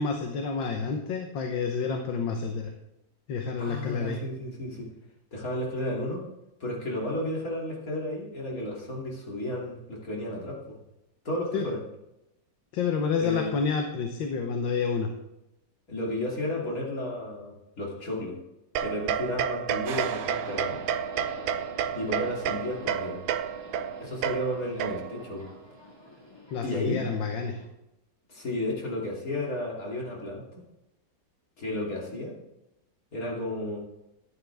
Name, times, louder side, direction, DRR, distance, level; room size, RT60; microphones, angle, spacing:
voice 1, 0.0-2.7 3.3-4.2 11.5-11.7 12.7-15.1 26.5-27.6, left 5 dB, 80° left, 4 dB, 1.8 m, -29 dB
voice 2, 3.6-4.9 5.3-6.2 6.6-10.6 11.2-11.8 13.2-13.5 15.9-18.4 18.8-20.8 21.9-23.2 24.0-25.5 26.6-27.0 28.3-30.4 31.6-32.4 33.1-33.8, left 1 dB, 45° left, -3 dB, 3.3 m, -33 dB
sound 1, 18.8-25.3, right 9 dB, 90° right, 1.4 m, -31 dB
sound 2, 19.8-21.8, right 7 dB, 70° right, 1.4 m, -41 dB
Subway metro underground, 20.1-27.7, left 1 dB, 15° left, 1.9 m, -47 dB
12.5 x 11.5 x 3.5 m, 0.89 s
omnidirectional pair, 2.0 m